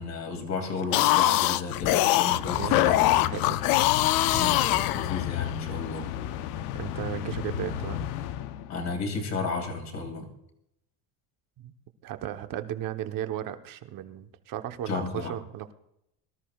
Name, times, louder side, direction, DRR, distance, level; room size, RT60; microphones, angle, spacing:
voice 1, 0.0-3.1 4.3-6.1 8.7-10.3 14.9-15.3, left 4 dB, 40° left, 4 dB, 2.5 m, -33 dB
sound 1, 0.8-5.5, left 16 dB, 55° left, 0.5 m, -23 dB
sound 2, 2.3-9.1, left 11 dB, 75° left, 0.9 m, -34 dB
voice 2, 2.6-3.8 4.3-4.5 6.7-8.0 11.6-11.7 12.0-15.7, right 11 dB, 50° right, 8 dB, 1.0 m, -35 dB
23.0 x 13.0 x 2.4 m, 0.80 s
cardioid pair, 145°, 44 cm